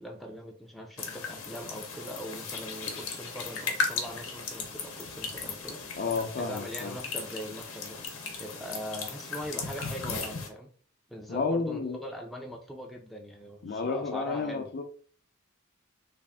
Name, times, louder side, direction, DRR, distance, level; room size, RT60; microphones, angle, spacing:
voice 1, 0.0-6.0 6.4-10.7 11.1-14.7, equal, ahead, 0.4 m, -41 dB
sound 1, 1.0-10.5, left 4 dB, 85° left, 0.9 m, -36 dB
voice 2, 6.0-7.0 11.3-12.0 13.6-14.8, left 4 dB, 50° left, 0.5 m, -31 dB
3.4 x 2.5 x 3.4 m
head